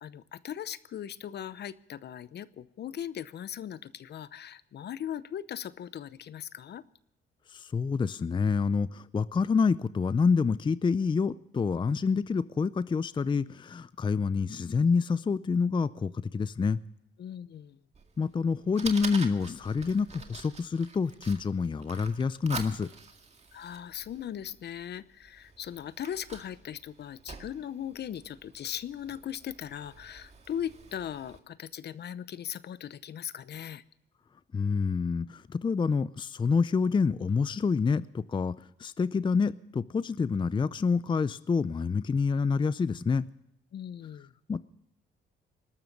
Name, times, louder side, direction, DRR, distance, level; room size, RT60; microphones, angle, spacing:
voice 1, 0.0-6.8 17.2-17.8 23.5-33.8 43.7-44.3, left 10 dB, 60° left, 17 dB, 0.8 m, -39 dB
voice 2, 7.5-16.8 18.2-22.9 34.5-43.3 44.5-44.6, left 5 dB, 25° left, 17 dB, 0.5 m, -27 dB
Fire, 17.9-31.4, right 4 dB, 35° right, 2.1 m, -46 dB
20.5 x 12.5 x 5.3 m, 0.77 s
cardioid pair, 90°, 20 cm